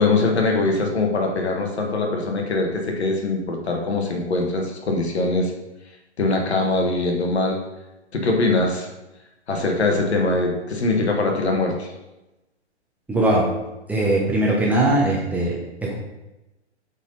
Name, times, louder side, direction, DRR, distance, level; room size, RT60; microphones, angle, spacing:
voice 1, 0.0-5.5 6.2-7.6 8.1-8.9 9.5-11.9, left 2 dB, 65° left, 2 dB, 1.6 m, -22 dB
voice 2, 13.1-13.5 13.9-16.0, right 1 dB, 5° right, -5 dB, 1.0 m, -20 dB
8.1 x 4.3 x 4.0 m, 0.99 s
figure-of-eight pair, 120°, 35 cm